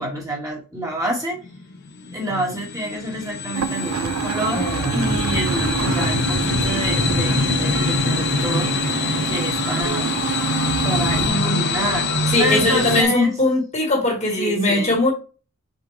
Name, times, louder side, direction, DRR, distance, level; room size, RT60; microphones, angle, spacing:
voice 1, 0.0-1.4 2.1-8.7 9.3-10.2 10.8-13.4 14.2-15.0, right 1 dB, 15° right, 2.0 m, -28 dB
sound 1, 1.4-13.0, left 3 dB, 50° left, 1.0 m, -24 dB
sound 2, 3.5-11.3, right 7 dB, 70° right, 0.4 m, -27 dB
voice 2, 4.5-5.1 10.8-11.5 12.3-15.1, left 2 dB, 30° left, 1.6 m, -21 dB
6.5 x 4.3 x 3.3 m
head